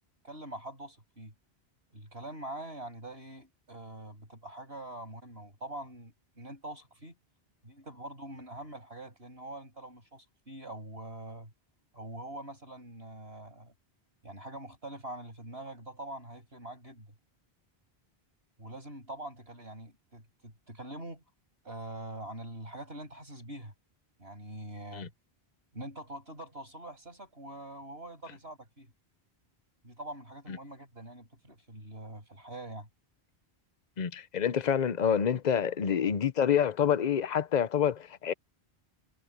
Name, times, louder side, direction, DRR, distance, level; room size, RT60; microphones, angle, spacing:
voice 1, 0.2-1.3 1.9-7.2 7.6-11.5 11.9-13.7 14.2-17.1 18.6-21.2 21.6-23.7 24.2-25.1 25.7-28.9 29.8-32.9, right 1 dB, 75° right, 7.8 m, -44 dB
voice 2, 34.0-38.3, left 8 dB, 45° left, 0.8 m, -27 dB
omnidirectional pair, 1.1 m